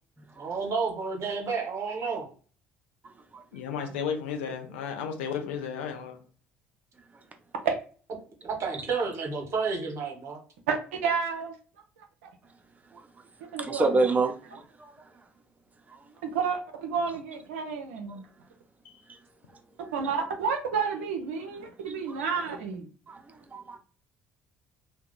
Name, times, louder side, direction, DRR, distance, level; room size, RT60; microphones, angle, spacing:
voice 1, 0.3-2.3 8.4-10.4, right 5 dB, 45° right, 1.0 m, -31 dB
voice 2, 3.5-6.2 18.8-19.0, left 7 dB, 75° left, 0.6 m, -33 dB
voice 3, 10.7-11.5 12.2-12.3 13.5-14.0 16.2-18.3 19.9-22.9, right 6 dB, 75° right, 0.5 m, -30 dB
voice 4, 13.6-14.9 15.9-16.0 22.2-22.3 23.1-23.8, right 3 dB, 25° right, 0.7 m, -28 dB
2.7 x 2.2 x 3.7 m
figure-of-eight pair, 55°, 7 cm